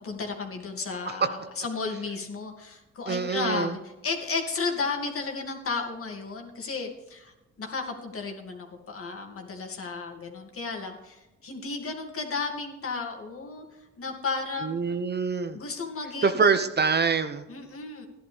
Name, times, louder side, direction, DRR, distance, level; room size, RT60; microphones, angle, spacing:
voice 1, 0.0-3.8 4.0-14.8 15.5-16.5 17.5-18.1, left 4 dB, 45° left, 2 dB, 2.5 m, -33 dB
voice 2, 1.1-1.5 3.1-3.7 14.6-15.6 16.2-17.4, right 5 dB, 35° right, 9 dB, 0.9 m, -25 dB
14.0 x 11.0 x 3.5 m, 1.0 s
cardioid pair, 90°, 30 cm